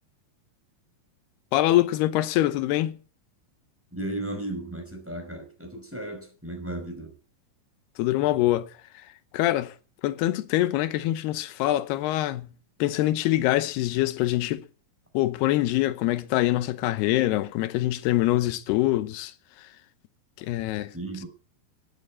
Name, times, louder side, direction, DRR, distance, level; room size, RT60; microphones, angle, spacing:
voice 1, 1.5-3.0 8.0-9.1 9.3-9.8 10.0-12.5 12.8-14.6 15.1-19.7 20.4-20.9, left 15 dB, 90° left, 2.9 m, -24 dB
voice 2, 3.9-7.1 20.9-21.3, right 1 dB, 5° right, 4.7 m, -35 dB
14.0 x 10.5 x 8.3 m
omnidirectional pair, 4.5 m